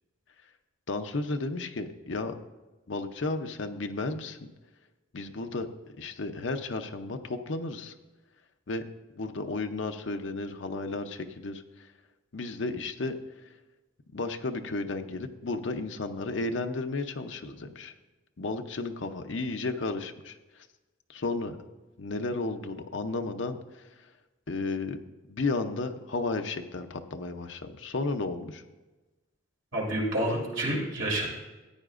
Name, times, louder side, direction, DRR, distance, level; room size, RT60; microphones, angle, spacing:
voice 1, 0.9-2.3 2.9-4.4 5.1-5.7 6.0-7.9 8.7-8.8 9.1-11.9 12.3-13.2 14.1-17.9 18.4-20.7 21.1-21.6 22.0-23.8 24.5-25.0 25.3-28.6, left 3 dB, 60° left, 6 dB, 0.6 m, -33 dB
voice 2, 29.7-31.3, right 1 dB, 65° right, -3 dB, 2.8 m, -28 dB
14.0 x 9.0 x 2.5 m, 1.1 s
head